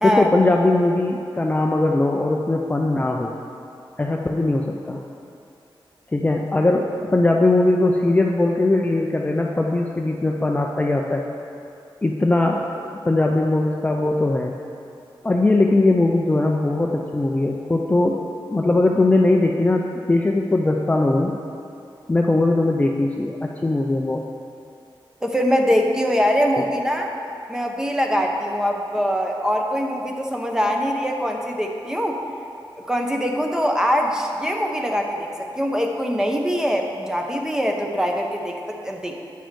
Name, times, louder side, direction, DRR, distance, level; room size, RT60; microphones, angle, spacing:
voice 1, 0.0-3.4 4.0-5.0 6.1-11.2 12.0-14.5 15.2-18.2 18.5-21.3 22.1-24.2, left 2 dB, 15° left, 1 dB, 0.4 m, -20 dB
voice 2, 25.2-27.1 27.5-32.2 32.9-39.2, equal, 5° right, 2 dB, 0.7 m, -23 dB
9.1 x 6.3 x 4.7 m, 2.7 s
wide cardioid pair, 130°, 9 cm